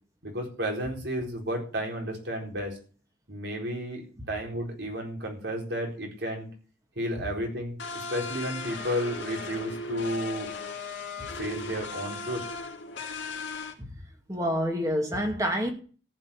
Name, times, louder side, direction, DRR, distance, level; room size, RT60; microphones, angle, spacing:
voice 1, 0.2-2.8 3.3-6.5 7.0-10.5 11.4-12.4, equal, 70° right, 4.2 m, -32 dB
sound 1, 7.8-13.7, left 3 dB, 80° left, 2.1 m, -37 dB
voice 2, 14.3-15.7, equal, 20° right, 2.1 m, -28 dB
14.5 x 5.3 x 8.6 m
head